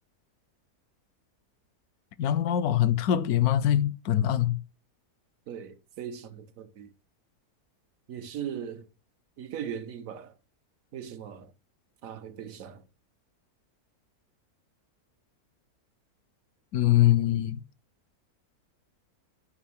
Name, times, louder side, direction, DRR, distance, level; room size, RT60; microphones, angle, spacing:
voice 1, 2.2-4.6 16.7-17.6, left 11 dB, 80° left, 1.1 m, -23 dB
voice 2, 5.5-6.9 8.1-8.9 9.4-10.4 10.9-11.5 12.0-12.9, right 8 dB, 65° right, 1.1 m, -39 dB
9.4 x 3.6 x 5.9 m
omnidirectional pair, 1.6 m